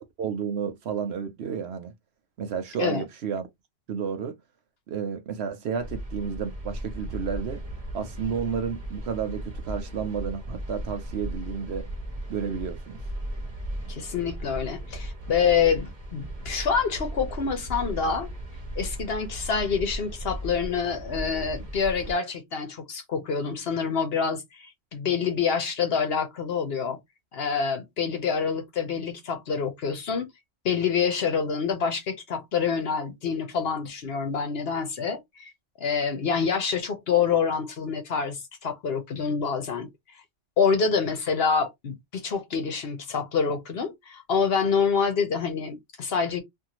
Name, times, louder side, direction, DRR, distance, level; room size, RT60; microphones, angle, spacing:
voice 1, 0.2-1.9 2.4-3.5 3.9-4.3 4.9-7.6 7.9-11.9 12.3-13.0, right 7 dB, 65° right, 0.8 m, -31 dB
sound 1, 5.8-22.1, right 1 dB, 35° right, 0.9 m, -36 dB
voice 2, 13.9-18.3 18.8-27.0 27.3-30.3 30.6-35.5 35.8-39.9 40.6-46.4, left 6 dB, 55° left, 0.9 m, -27 dB
2.6 x 2.5 x 2.9 m
omnidirectional pair, 1.3 m